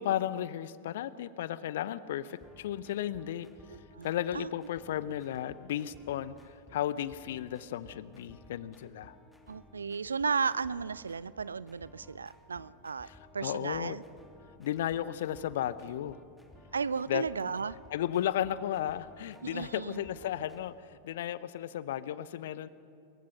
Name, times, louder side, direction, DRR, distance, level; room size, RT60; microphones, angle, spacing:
voice 1, 0.0-3.5 4.0-6.3 6.7-9.2 13.1-13.2 13.4-14.0 14.6-16.2 17.1-17.2 17.9-22.7, left 11 dB, 55° left, 17 dB, 0.7 m, -34 dB
sound 1, 2.3-20.6, left 1 dB, 5° left, 2.7 m, -58 dB
voice 2, 3.7-4.5 9.5-13.1 13.3-14.0 16.7-17.8 19.4-20.0, right 5 dB, 75° right, 21 dB, 0.5 m, -34 dB
27.5 x 22.5 x 5.9 m, 2.5 s
figure-of-eight pair, 90°, 0 cm